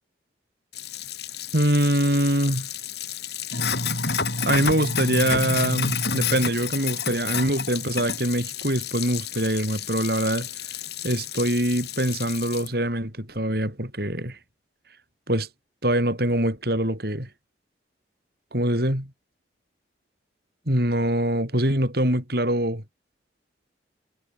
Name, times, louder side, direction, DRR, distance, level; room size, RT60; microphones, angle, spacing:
Sink (filling or washing), 0.7-12.7, left 6 dB, 60° left, 7.6 m, -30 dB
voice 1, 1.5-2.7 4.4-10.5 11.0-14.4 15.3-15.5 15.8-17.3 18.5-19.1 20.7-22.8, right 1 dB, 55° right, 7.9 m, -24 dB
head